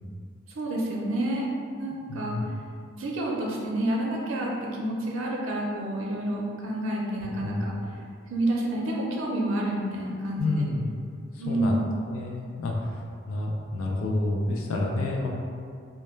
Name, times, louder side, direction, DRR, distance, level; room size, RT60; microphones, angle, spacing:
voice 1, 0.5-1.5 1.7-2.4 3.0-7.8 8.3-10.7 11.4-11.9, right 1 dB, 80° right, -2 dB, 0.5 m, -29 dB
voice 2, 2.1-2.4 7.4-7.7 10.4-10.9 11.5-11.7 12.1-13.0 13.3-15.3, left 2 dB, 90° left, -1 dB, 0.3 m, -29 dB
2.2 x 2.1 x 3.0 m, 2.2 s
head